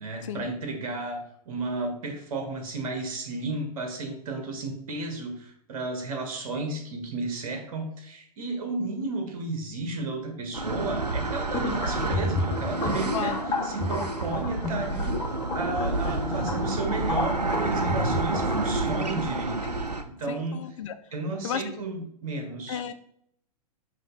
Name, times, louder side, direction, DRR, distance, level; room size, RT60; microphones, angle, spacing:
voice 1, 0.0-13.4 13.6-15.1 15.5-20.6 21.1-22.8, right 3 dB, 60° right, 4 dB, 1.8 m, -33 dB
sound 1, 10.5-20.0, right 2 dB, 90° right, 0.7 m, -29 dB
sound 2, 11.5-18.7, left 2 dB, 20° left, 1.7 m, -32 dB
voice 2, 13.1-13.5 19.6-19.7 20.3-20.9 21.4-21.6 22.7-22.9, left 9 dB, 55° left, 10 dB, 0.7 m, -33 dB
7.5 x 3.2 x 4.1 m, 0.70 s
figure-of-eight pair, 105°, 20 cm